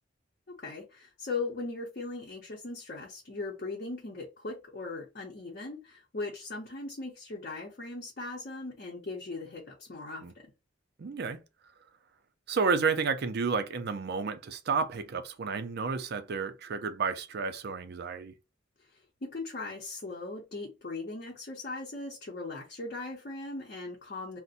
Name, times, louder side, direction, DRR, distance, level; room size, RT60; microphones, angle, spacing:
voice 1, 0.5-10.5 18.8-24.4, left 3 dB, 50° left, 0.7 m, -39 dB
voice 2, 11.0-11.4 12.5-18.3, right 5 dB, 60° right, 0.5 m, -31 dB
2.5 x 2.1 x 4.0 m
head